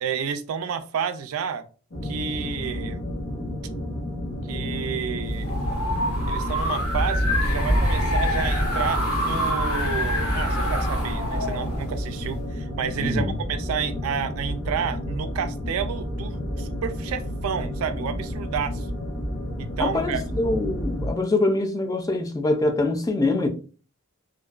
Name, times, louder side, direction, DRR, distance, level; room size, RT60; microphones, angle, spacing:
voice 1, 0.0-1.7 2.0-3.1 4.5-5.6 6.3-18.9 19.6-20.2, right 7 dB, 75° right, 0.3 m, -30 dB
sound 1, 1.9-21.1, left 1 dB, 45° left, 0.7 m, -31 dB
sound 2, 5.2-12.4, equal, 80° left, 1.1 m, -25 dB
voice 2, 13.0-13.4 19.8-23.5, left 2 dB, 15° left, 0.3 m, -24 dB
2.5 x 2.2 x 2.3 m
head